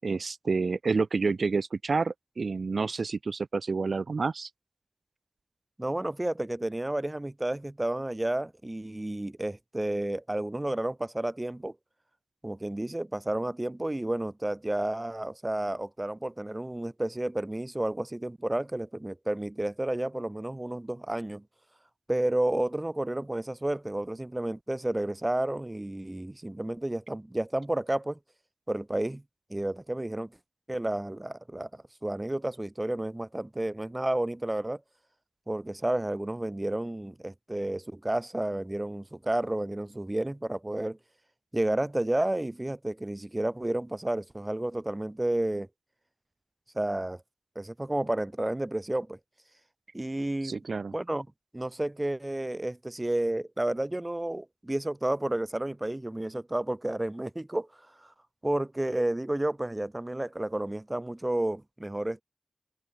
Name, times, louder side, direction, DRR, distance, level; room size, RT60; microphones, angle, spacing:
voice 1, 0.0-4.5 50.4-50.9, right 4 dB, 85° right, 6.6 m, -29 dB
voice 2, 5.8-11.8 12.4-21.4 22.1-28.2 28.7-29.2 29.5-30.3 30.7-34.8 35.5-41.0 41.5-45.7 46.8-47.2 47.6-49.2 49.9-50.6 50.9-51.3 51.5-57.7 58.0-58.1 58.4-62.2, right 1 dB, 25° right, 7.0 m, -31 dB
wide cardioid pair, 55°, 0 cm